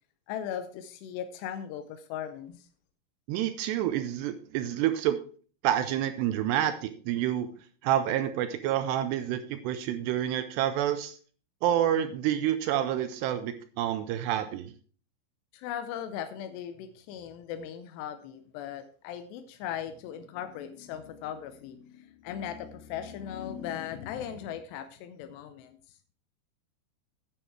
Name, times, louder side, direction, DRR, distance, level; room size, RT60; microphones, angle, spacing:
voice 1, 0.3-2.7 15.5-25.8, left 9 dB, 80° left, 9 dB, 2.7 m, -38 dB
voice 2, 3.3-5.2 5.6-7.5 7.8-11.2 11.6-14.7, right 11 dB, 80° right, 10 dB, 2.5 m, -28 dB
10.0 x 9.1 x 4.6 m, 0.42 s
omnidirectional pair, 5.4 m